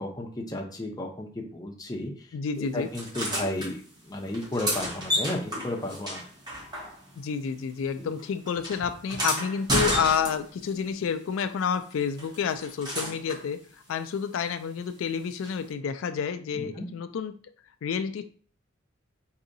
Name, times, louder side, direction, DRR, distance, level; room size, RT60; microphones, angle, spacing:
voice 1, 0.0-2.1 2.6-3.8 4.0-6.2 16.5-16.9, left 1 dB, 20° left, 0 dB, 0.7 m, -33 dB
voice 2, 2.3-2.9 7.2-13.6 13.9-17.3 17.8-18.2, left 6 dB, 90° left, 10 dB, 0.3 m, -29 dB
sound 1, 2.9-3.7 4.3-7.3 7.5-10.7 12.2-13.5 15.4-15.5, equal, 20° right, 1.2 m, -31 dB
4.7 x 2.8 x 2.6 m, 0.43 s
head